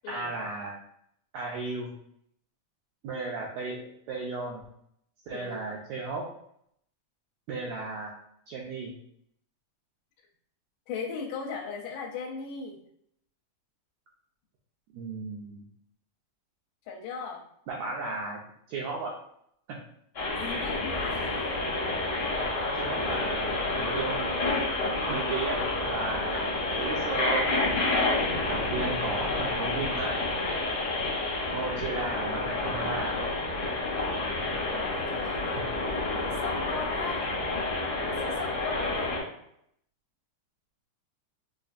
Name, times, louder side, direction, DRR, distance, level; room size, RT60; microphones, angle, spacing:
voice 1, 0.1-0.7 1.3-1.9 3.0-4.6 5.3-6.2 7.5-8.1 8.5-8.9 14.9-15.6 17.7-18.4 18.7-19.1 19.7-19.8 21.2-21.3 22.4-22.5 22.8-24.3 25.1-25.6 25.8-27.8 28.5-30.2 31.5-33.2 35.6-35.7, right 3 dB, 80° right, -3 dB, 1.6 m, -35 dB
voice 2, 10.9-12.8 16.9-17.4 20.3-21.6 34.7-37.4 38.1-39.2, left 5 dB, 85° left, 0 dB, 2.1 m, -38 dB
sound 1, 20.1-39.2, left 2 dB, 55° left, 1.0 m, -29 dB
5.1 x 2.5 x 2.5 m, 0.72 s
omnidirectional pair, 3.7 m